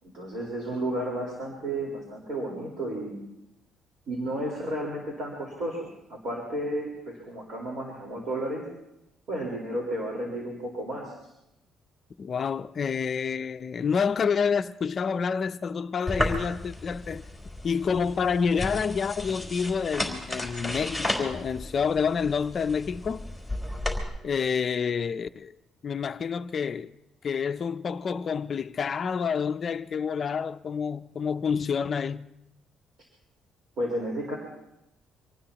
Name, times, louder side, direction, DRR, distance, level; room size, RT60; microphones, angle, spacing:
voice 1, 0.0-3.2 4.1-8.6 9.3-11.3 33.8-34.4, right 1 dB, 55° right, 4.2 m, -32 dB
voice 2, 12.2-17.2 17.6-23.3 24.2-25.5 25.8-26.9 27.2-32.3, left 6 dB, 35° left, 0.5 m, -28 dB
sound 1, 16.1-24.0, left 1 dB, 10° right, 3.6 m, -33 dB
26.0 x 19.0 x 2.9 m
cardioid pair, 140°, 0 cm